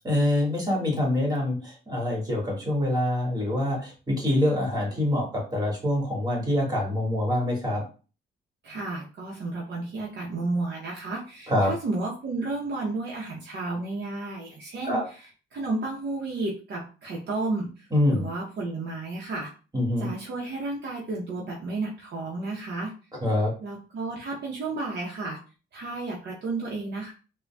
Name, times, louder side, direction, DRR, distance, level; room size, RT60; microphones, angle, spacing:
voice 1, 0.0-7.8 11.5-11.7 14.8-15.0 17.9-18.3 19.7-20.1 23.2-23.5, left 1 dB, 20° right, -2 dB, 1.6 m, -25 dB
voice 2, 8.6-15.2 15.5-19.5 20.0-22.9 23.6-25.4 25.7-27.1, right 2 dB, 60° right, -3 dB, 0.8 m, -32 dB
3.8 x 2.2 x 2.2 m, 0.35 s
cardioid pair, 90°, 20 cm